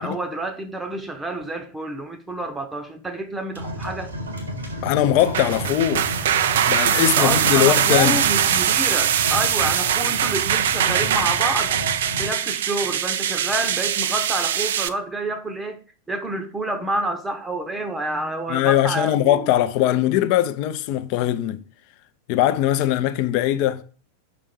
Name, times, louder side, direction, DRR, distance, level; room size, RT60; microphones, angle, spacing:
voice 1, 0.0-4.1 7.0-11.8 12.2-15.8 16.1-19.5, right 2 dB, 10° right, 0.8 m, -28 dB
sound 1, 3.5-12.3, equal, 80° right, 1.7 m, -33 dB
voice 2, 4.8-6.1 6.7-8.2 18.5-21.6 22.3-23.8, left 12 dB, 45° left, 0.6 m, -20 dB
sound 2, 5.2-14.9, right 9 dB, 60° right, 0.4 m, -22 dB
5.4 x 4.2 x 5.2 m
figure-of-eight pair, 90°, 0 cm